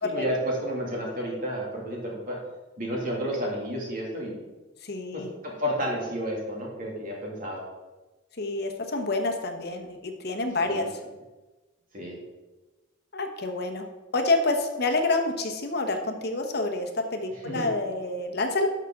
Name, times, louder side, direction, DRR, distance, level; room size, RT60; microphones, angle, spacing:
voice 1, 0.0-2.4 2.8-4.4 5.1-7.6 10.6-10.9 11.9-12.2 17.4-17.7, equal, 45° right, -2 dB, 2.4 m, -31 dB
voice 2, 4.8-5.3 8.4-10.9 13.1-13.8 14.1-18.7, left 2 dB, 55° left, 5 dB, 1.1 m, -28 dB
12.0 x 5.8 x 3.8 m, 1.2 s
head